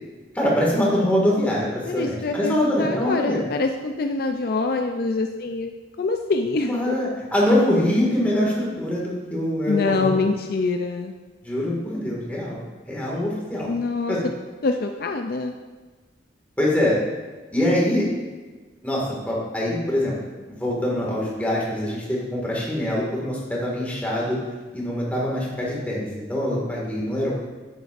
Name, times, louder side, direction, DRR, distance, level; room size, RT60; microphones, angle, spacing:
voice 1, 0.3-3.4 6.6-10.2 11.4-12.6 12.9-13.7 14.1-14.2 16.6-17.0 17.5-18.0 18.8-20.1 20.4-24.4 24.7-27.4, left 1 dB, 10° left, -4 dB, 1.9 m, -24 dB
voice 2, 1.9-6.9 9.7-11.1 13.7-14.2 14.6-15.5, left 3 dB, 55° left, 5 dB, 0.4 m, -25 dB
9.2 x 9.2 x 2.5 m, 1.3 s
head